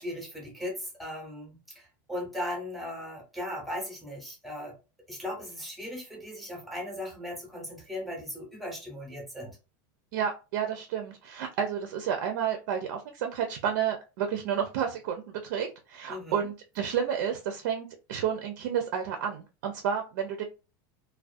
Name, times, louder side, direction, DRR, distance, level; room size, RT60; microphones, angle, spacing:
voice 1, 0.0-4.7 5.1-9.6 16.1-16.5, left 1 dB, ahead, 1 dB, 0.6 m, -38 dB
voice 2, 10.1-20.4, right 8 dB, 65° right, 5 dB, 0.5 m, -31 dB
2.3 x 2.1 x 2.5 m, 0.30 s
supercardioid pair, 170°, 11 cm